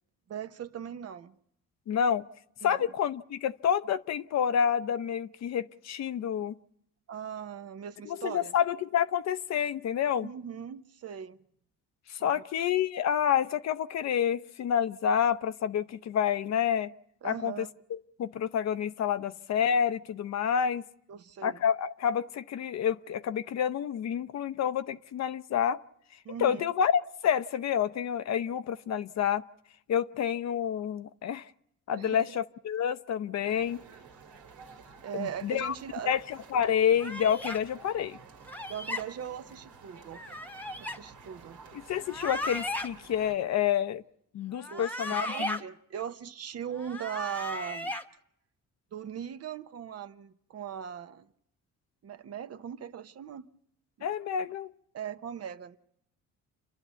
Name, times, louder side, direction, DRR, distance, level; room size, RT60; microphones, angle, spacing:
voice 1, 0.3-1.3 2.6-2.9 7.1-8.5 10.2-11.4 12.2-12.4 17.2-17.7 21.1-21.6 26.2-26.7 31.9-32.4 35.0-36.1 38.7-40.2 40.8-41.6 44.7-48.0 48.9-51.3 52.0-53.5 54.0-54.1 54.9-55.8, right 8 dB, 55° right, 10 dB, 0.9 m, -39 dB
voice 2, 1.9-2.2 2.6-6.5 8.1-10.3 12.1-16.9 17.2-17.7 17.9-20.8 21.4-25.8 26.4-29.4 29.9-31.5 31.9-33.8 35.1-35.7 36.1-38.2 41.9-44.0 44.3-45.6 54.0-54.7, left 8 dB, 60° left, 13 dB, 0.7 m, -28 dB
sound 1, 33.4-43.4, right 5 dB, 85° right, 2.3 m, -52 dB
sound 2, 37.0-37.6 38.5-39.0 40.1-41.0 42.0-42.9 44.6-45.6 46.7-48.0, left 1 dB, 5° left, 1.1 m, -36 dB
29.0 x 11.0 x 8.3 m, 0.75 s
cardioid pair, 90°, 30 cm